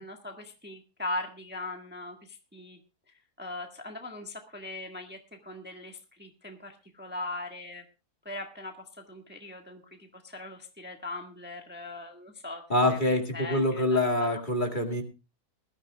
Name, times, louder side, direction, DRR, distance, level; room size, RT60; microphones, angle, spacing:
voice 1, 0.0-2.8 3.4-7.8 8.2-14.4, left 2 dB, 5° right, 3 dB, 1.4 m, -40 dB
voice 2, 12.7-15.0, left 1 dB, 30° left, 4 dB, 2.1 m, -25 dB
21.0 x 13.5 x 2.3 m, 0.29 s
omnidirectional pair, 1.7 m